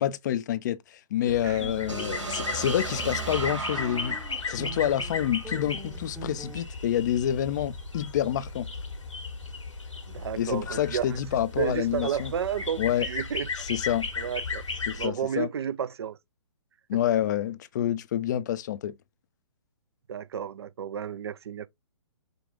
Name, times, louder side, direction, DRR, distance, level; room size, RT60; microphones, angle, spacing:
voice 1, 0.0-4.2 4.5-8.7 10.4-12.3 12.8-13.1 13.6-14.1 14.9-15.5 16.9-18.9, left 11 dB, 40° left, 0.4 m, -28 dB
sound 1, 1.3-15.1, left 4 dB, 80° left, 1.5 m, -36 dB
sound 2, 1.5-6.6, right 2 dB, ahead, 0.8 m, -44 dB
sound 3, 1.9-5.8, right 4 dB, 85° right, 2.6 m, -36 dB
voice 2, 10.1-11.2 11.6-13.7 14.2-14.6 15.0-16.2 16.9-17.0 20.1-21.7, right 8 dB, 60° right, 0.5 m, -32 dB
5.2 x 2.3 x 3.5 m
figure-of-eight pair, 130°, 16 cm